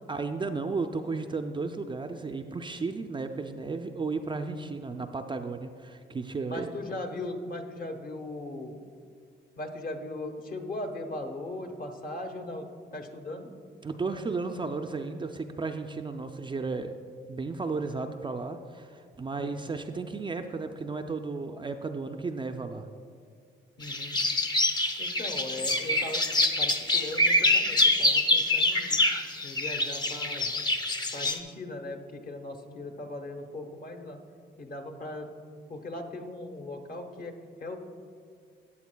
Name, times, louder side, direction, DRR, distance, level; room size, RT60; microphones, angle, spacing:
voice 1, 0.1-6.7 13.8-16.9 17.3-22.9, right 4 dB, 25° right, 5 dB, 0.4 m, -34 dB
voice 2, 6.5-8.8 9.6-13.5 19.4-19.7 23.8-24.2 25.0-29.0 29.4-30.6 31.1-34.2 34.6-35.3 35.7-37.8, left 2 dB, 45° left, 5 dB, 1.1 m, -39 dB
sound 1, 23.8-31.4, left 1 dB, 20° left, 0.7 m, -26 dB
14.0 x 8.5 x 2.2 m, 2.2 s
cardioid pair, 90°, 20 cm